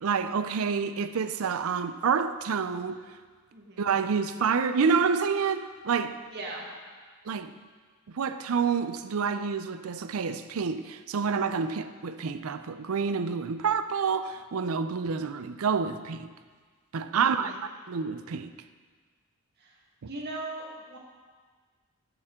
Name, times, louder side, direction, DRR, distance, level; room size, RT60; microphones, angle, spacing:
voice 1, 0.0-3.0 3.8-6.2 7.3-7.5 8.1-16.3 16.9-17.5 17.9-18.5, right 5 dB, 70° right, 0.5 m, -28 dB
voice 2, 6.3-6.7 17.2-17.6 19.6-19.8 20.1-21.0, right 2 dB, 45° right, 1.6 m, -39 dB
13.0 x 7.0 x 3.7 m
head